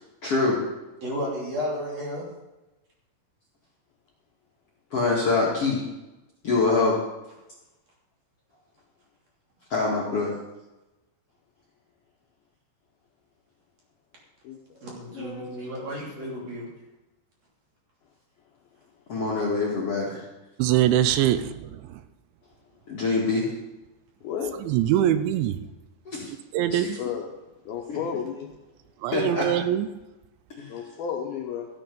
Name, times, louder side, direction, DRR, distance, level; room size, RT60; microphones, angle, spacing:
voice 1, 0.2-0.6 1.2-1.3 1.6-1.8 4.9-5.8 6.4-7.0 9.7-10.3 19.1-20.2 22.9-23.5 26.1-26.3 26.7-26.8 27.9-28.0 29.1-29.5 30.6-30.7, left 3 dB, 50° left, -5 dB, 1.9 m, -25 dB
voice 2, 1.0-2.3 14.8-16.7, equal, 40° right, -4 dB, 3.7 m, -33 dB
voice 3, 14.4-14.8 15.1-15.7 24.2-24.5 27.0-27.3 27.7-28.5 30.7-31.7, left 7 dB, 75° left, 1 dB, 2.3 m, -33 dB
voice 4, 20.6-22.0 24.5-25.6 26.2-27.0 29.0-29.9, right 11 dB, 85° right, 11 dB, 3.0 m, -23 dB
14.0 x 8.9 x 5.3 m, 1.0 s
omnidirectional pair, 5.2 m